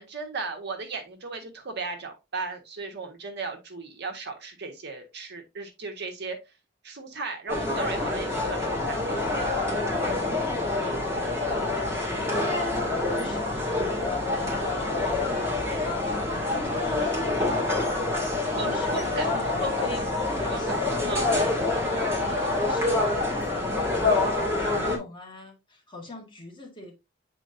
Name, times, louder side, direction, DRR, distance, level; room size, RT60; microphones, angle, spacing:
voice 1, 0.0-6.4 6.8-9.0 18.5-19.3 19.6-19.8 20.5-20.8 21.1-21.4, right 4 dB, 60° right, 1.5 m, -36 dB
sound 1, 7.5-25.0, left 2 dB, 15° right, 2.3 m, -26 dB
voice 2, 10.3-14.2 14.5-26.9, left 3 dB, 25° left, 1.7 m, -42 dB
8.2 x 4.6 x 2.7 m
head